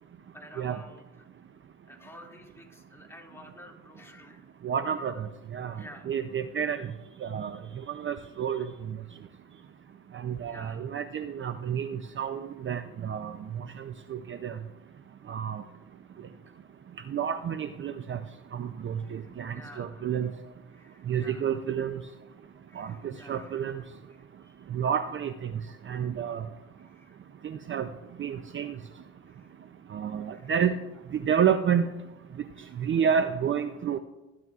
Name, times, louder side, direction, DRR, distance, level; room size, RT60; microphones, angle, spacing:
voice 1, 0.3-1.3 1.9-4.4 5.7-6.2 10.5-10.9 19.0-20.0 20.7-21.5 22.7-23.7 24.2-24.7 26.7-27.2 27.6-27.7 29.3-29.5 30.3-30.5 30.8-30.9 32.5-32.7, equal, 10° left, 0 dB, 2.3 m, -51 dB
voice 2, 4.6-6.9 7.2-7.6 7.9-9.0 10.1-14.6 15.3-15.6 17.1-18.2 18.5-20.3 21.1-22.0 22.8-23.8 24.7-25.5 25.9-26.5 27.4-27.9 28.2-28.8 29.9-30.8 31.1-31.9 32.8-34.0, right 8 dB, 40° right, 10 dB, 0.5 m, -30 dB
18.5 x 10.5 x 2.4 m, 1.1 s
cardioid pair, 90°, 30 cm